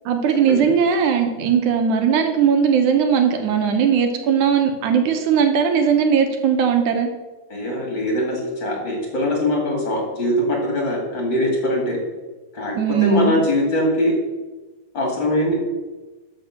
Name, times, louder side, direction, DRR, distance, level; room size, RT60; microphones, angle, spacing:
voice 1, 0.1-7.1 12.8-13.4, right 7 dB, 75° right, 5 dB, 2.3 m, -18 dB
voice 2, 7.5-12.0 12.5-14.1 14.9-15.5, left 1 dB, 40° left, -1 dB, 3.0 m, -22 dB
13.0 x 5.4 x 6.6 m, 1.2 s
omnidirectional pair, 3.6 m